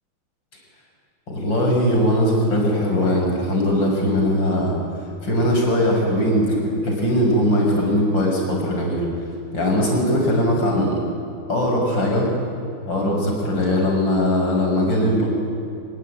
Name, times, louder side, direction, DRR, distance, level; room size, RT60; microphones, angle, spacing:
voice 1, 1.3-4.7 5.2-6.6 6.8-9.0 9.5-11.0 11.5-12.3 12.9-15.3, equal, 60° left, -1 dB, 7.5 m, -20 dB
25.0 x 22.5 x 9.5 m, 2.7 s
omnidirectional pair, 2.3 m